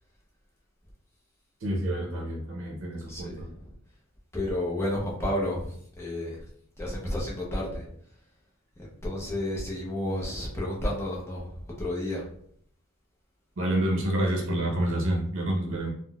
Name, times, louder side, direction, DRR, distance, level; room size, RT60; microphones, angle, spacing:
voice 1, 1.6-3.5 13.6-15.9, right 1 dB, 60° right, -1 dB, 0.7 m, -28 dB
voice 2, 3.0-3.8 4.3-6.5 6.8-8.3 8.8-12.3, left 1 dB, 10° left, -4 dB, 0.7 m, -32 dB
3.7 x 2.1 x 2.3 m, 0.65 s
head